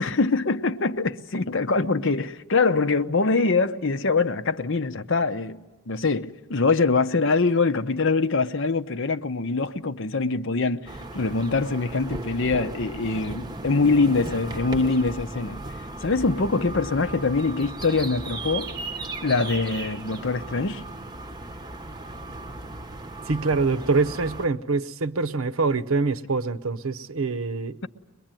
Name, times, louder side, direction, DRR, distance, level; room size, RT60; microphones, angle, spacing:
voice 1, 0.0-18.7 19.2-20.8, left 3 dB, 55° left, 0.8 m, -24 dB
sound 1, 10.9-24.5, right 2 dB, 20° right, 0.8 m, -36 dB
voice 2, 23.3-27.8, right 4 dB, 65° right, 0.8 m, -25 dB
22.5 x 22.5 x 9.1 m
head